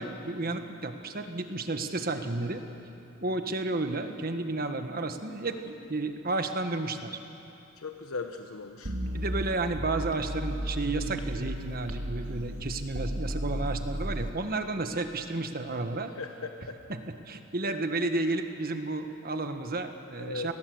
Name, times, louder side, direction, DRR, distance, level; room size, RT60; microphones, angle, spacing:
voice 1, 0.0-2.6 3.2-7.2 9.1-16.1 16.9-17.0 17.3-20.5, right 2 dB, 45° right, 7 dB, 1.4 m, -32 dB
voice 2, 7.8-8.9 16.2-16.8 20.2-20.5, left 4 dB, 75° left, 5 dB, 1.2 m, -38 dB
sound 1, 8.8-11.6 11.9-14.3, right 1 dB, 70° right, 2.2 m, -34 dB
28.5 x 19.5 x 7.9 m, 2.8 s
head